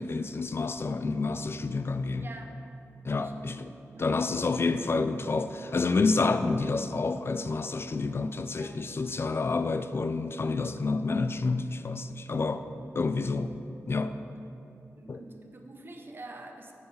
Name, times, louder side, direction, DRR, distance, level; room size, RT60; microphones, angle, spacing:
voice 1, 0.0-2.3 3.0-3.7 4.0-12.6 13.0-13.5 13.9-14.2 15.1-15.2, left 3 dB, 45° left, 10 dB, 0.4 m, -29 dB
voice 2, 2.2-2.6 3.2-3.7 3.9-4.1 8.5-8.9 15.0-16.7, right 2 dB, 40° right, 4 dB, 0.9 m, -46 dB
7.1 x 6.6 x 5.5 m, 2.7 s
wide cardioid pair, 75°, 6 cm